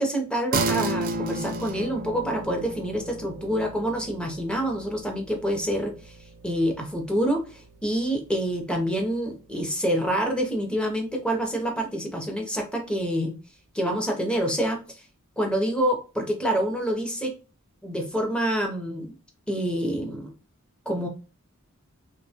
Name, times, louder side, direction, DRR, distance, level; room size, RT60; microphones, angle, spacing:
voice 1, 0.0-6.1 6.4-13.4 13.7-14.8 15.4-17.3 17.8-19.2 19.5-20.3 20.9-21.1, equal, 5° left, 3 dB, 0.6 m, -27 dB
sound 1, 0.5-10.3, right 2 dB, 45° right, 0.4 m, -34 dB
2.7 x 2.1 x 2.7 m, 0.33 s
head